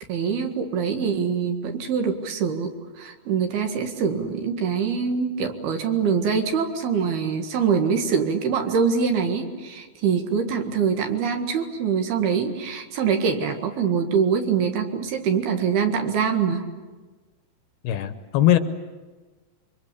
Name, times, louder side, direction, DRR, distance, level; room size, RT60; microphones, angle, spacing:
voice 1, 0.1-16.6, right 6 dB, 70° right, 5 dB, 3.6 m, -24 dB
voice 2, 17.8-18.6, left 12 dB, 75° left, 10 dB, 2.8 m, -20 dB
27.5 x 24.0 x 8.5 m, 1.3 s
omnidirectional pair, 4.8 m